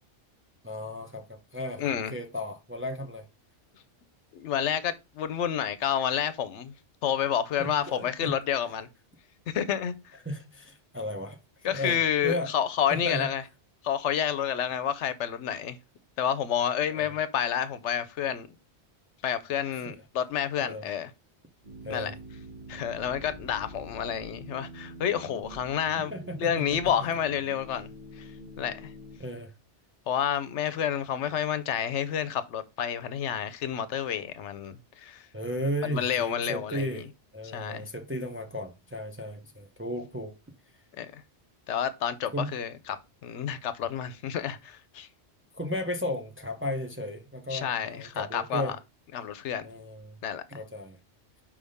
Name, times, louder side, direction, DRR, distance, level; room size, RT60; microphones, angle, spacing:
voice 1, 0.6-1.8 2.1-3.2 7.6-8.3 10.2-11.4 11.6-12.5 12.9-13.3 16.9-17.1 19.7-20.0 20.6-20.8 21.8-22.1 26.0-27.1 29.2-29.5 35.3-37.1 37.3-40.3 42.3-42.5 45.5-48.7 49.6-50.1 50.5-51.0, equal, 10° right, 0.7 m, -35 dB
voice 2, 1.8-2.1 4.3-6.7 7.0-8.9 9.5-9.9 11.6-13.4 13.8-15.8 16.2-18.5 19.2-21.1 21.9-22.1 22.7-26.1 26.4-27.9 28.2-28.3 28.6-28.9 30.1-35.3 35.8-37.0 37.5-37.9 41.0-41.2 41.7-43.0 43.2-45.1 47.5-48.7 49.1-49.7 50.2-50.4, left 9 dB, 75° left, 1.0 m, -29 dB
modular noises random, 21.6-29.2, equal, 45° right, 1.6 m, -45 dB
5.2 x 3.6 x 5.3 m
omnidirectional pair, 1.2 m